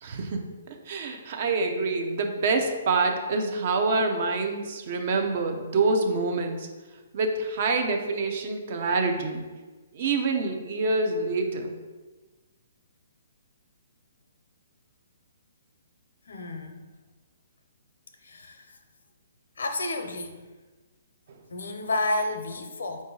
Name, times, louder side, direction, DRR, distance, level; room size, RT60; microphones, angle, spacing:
voice 1, 0.0-6.7 7.1-9.4 9.9-11.8, right 3 dB, 50° right, 4 dB, 0.6 m, -26 dB
voice 2, 16.3-16.8 18.2-18.8 19.6-20.4 21.5-23.0, left 2 dB, 80° left, 6 dB, 0.6 m, -31 dB
5.0 x 2.6 x 3.8 m, 1.3 s
hypercardioid pair, 140°, 0 cm